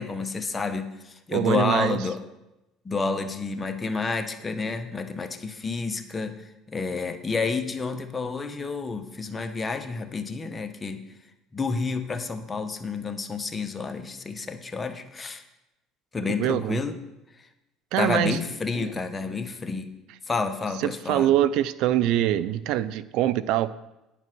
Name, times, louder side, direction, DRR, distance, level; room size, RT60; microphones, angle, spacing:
voice 1, 0.0-2.2 2.8-6.3 6.7-11.0 11.5-15.4 16.1-17.0 18.0-19.9 20.3-21.3, left 4 dB, 20° left, 6 dB, 1.1 m, -29 dB
voice 2, 1.3-2.0 16.4-16.8 17.9-18.4 18.7-18.9 20.8-23.7, right 12 dB, 70° right, 17 dB, 0.4 m, -24 dB
9.6 x 7.1 x 6.1 m, 0.95 s
supercardioid pair, 110°, 0 cm